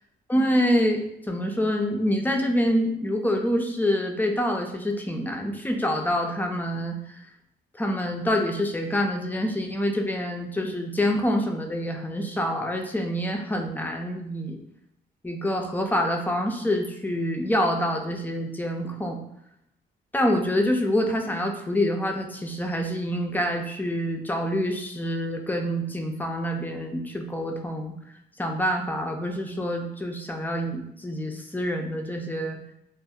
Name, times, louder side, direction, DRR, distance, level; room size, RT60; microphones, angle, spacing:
voice 1, 0.3-7.0 7.7-14.6 15.2-19.2 20.1-28.0 28.4-32.6, equal, 10° left, 3 dB, 0.3 m, -26 dB
2.6 x 2.0 x 2.3 m, 0.79 s
cardioid pair, 90°, 20 cm